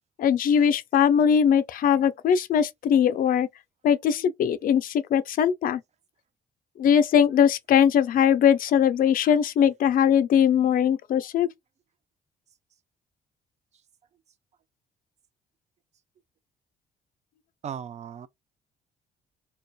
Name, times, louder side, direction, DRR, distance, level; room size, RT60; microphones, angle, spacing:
voice 1, 0.2-3.5 3.8-5.8 6.8-11.5, left 8 dB, 55° left, 0.4 m, -21 dB
voice 2, 17.6-18.3, right 8 dB, 40° right, 0.4 m, -36 dB
2.4 x 2.2 x 2.2 m
supercardioid pair, 75°, 17 cm